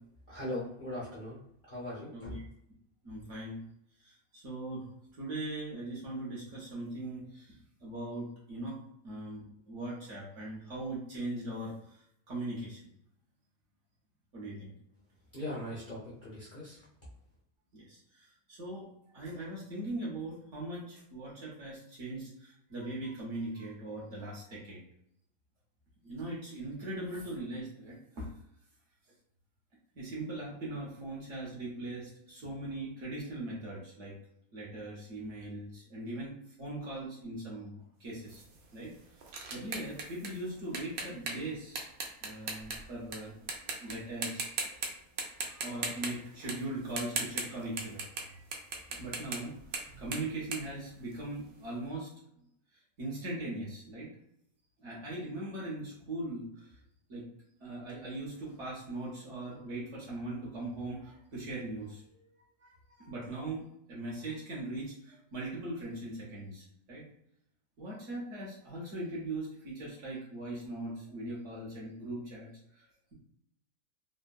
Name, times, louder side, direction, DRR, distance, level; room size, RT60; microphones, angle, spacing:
voice 1, 0.3-2.4 15.3-16.8, left 1 dB, 45° left, -7 dB, 0.8 m, -40 dB
voice 2, 3.0-3.6 4.0-4.8 5.2-8.8 9.0-12.0 12.3-12.8 14.3-14.7 17.7-18.9 19.1-24.8 26.0-28.3 30.0-34.2 34.5-38.4 38.7-38.9 39.5-41.9 42.2-43.3 43.8-44.7 45.5-48.4 48.9-49.5 50.0-52.1 53.0-54.1 54.8-56.5 57.1-57.3 57.6-62.3 62.6-62.7 63.0-67.0 67.8-73.1, right 2 dB, 55° right, -5 dB, 1.1 m, -40 dB
sound 1, 38.3-43.2 43.5-43.9 44.2-44.9 45.2-51.5, right 4 dB, 85° right, 0.5 m, -38 dB
3.4 x 2.0 x 2.3 m, 0.74 s
omnidirectional pair, 1.7 m